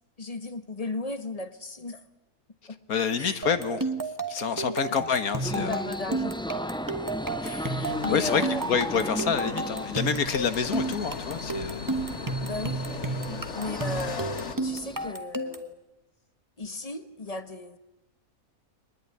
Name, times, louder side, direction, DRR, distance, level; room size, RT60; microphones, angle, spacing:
voice 1, 0.2-2.0 2.7-2.8 3.2-3.4 4.7-4.8 5.1-5.2 5.5-6.3 7.4-8.6 12.4-12.8 13.5-15.8 16.6-17.8, left 2 dB, 25° left, 11 dB, 1.3 m, -35 dB
voice 2, 2.9-3.9 4.3-5.8 7.4-7.6 8.1-8.4 8.7-11.9 13.2-13.4, left 6 dB, 80° left, 11 dB, 1.9 m, -28 dB
sound 1, 3.4-15.7, right 2 dB, 15° right, 1.4 m, -32 dB
sound 2, 5.3-15.1, left 1 dB, 5° left, 0.6 m, -36 dB
sound 3, 7.8-14.6, left 5 dB, 55° left, 1.7 m, -39 dB
23.0 x 20.5 x 9.7 m, 0.91 s
omnidirectional pair, 1.5 m